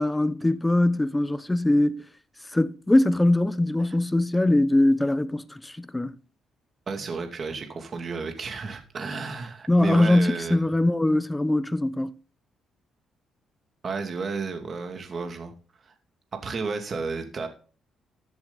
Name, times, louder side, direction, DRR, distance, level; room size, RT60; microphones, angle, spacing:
voice 1, 0.0-2.0 2.5-6.1 9.7-12.1, left 1 dB, 10° left, 0.8 m, -22 dB
voice 2, 6.9-10.6 13.8-15.5 15.8-15.9 16.3-17.5, right 4 dB, 45° right, 2.4 m, -32 dB
14.0 x 7.9 x 4.1 m
cardioid pair, 90°, 0 cm